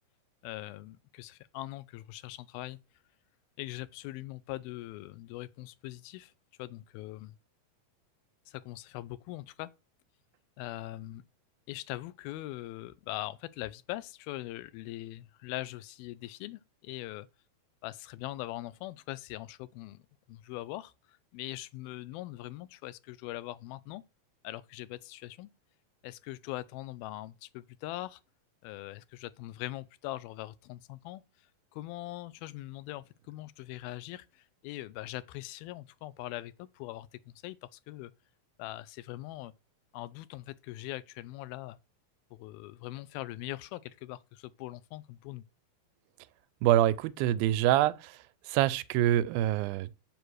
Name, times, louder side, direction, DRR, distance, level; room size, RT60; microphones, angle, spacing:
voice 1, 0.4-2.8 3.6-6.3 6.6-7.3 8.5-9.7 10.6-11.2 11.7-17.3 17.8-20.0 20.3-24.0 24.4-25.5 26.0-28.2 28.6-31.2 31.7-38.1 38.6-39.5 39.9-41.8 42.3-45.4, left 16 dB, 85° left, 2.5 m, -41 dB
voice 2, 46.6-48.1 48.5-49.9, right 13 dB, 85° right, 2.4 m, -25 dB
7.8 x 6.7 x 6.3 m
omnidirectional pair, 4.2 m